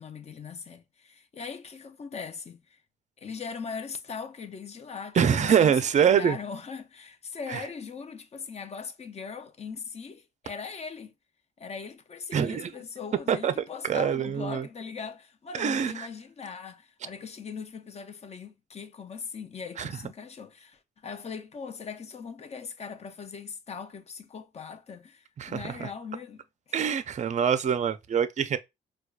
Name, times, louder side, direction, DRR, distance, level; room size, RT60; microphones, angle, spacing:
voice 1, 0.0-2.8 3.2-11.1 11.6-26.4, left 5 dB, 35° left, 0.5 m, -40 dB
voice 2, 5.2-6.4 7.5-7.6 12.3-12.7 13.3-14.7 15.5-16.1 19.8-19.9 25.4-25.9 26.7-28.6, right 8 dB, 35° right, 0.4 m, -25 dB
4.4 x 2.3 x 2.4 m
cardioid pair, 90°, 20 cm